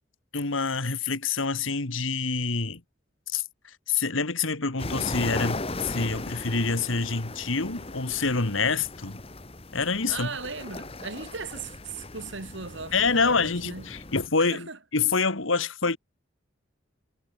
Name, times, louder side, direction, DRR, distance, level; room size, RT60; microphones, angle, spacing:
voice 1, 0.3-2.8 3.3-9.2 9.7-10.3 12.9-16.0, left 4 dB, 80° left, 2.1 m, -27 dB
sound 1, 4.8-14.3, left 2 dB, 30° left, 1.7 m, -37 dB
voice 2, 10.1-13.9 14.4-14.8, right 4 dB, 65° right, 2.6 m, -38 dB
head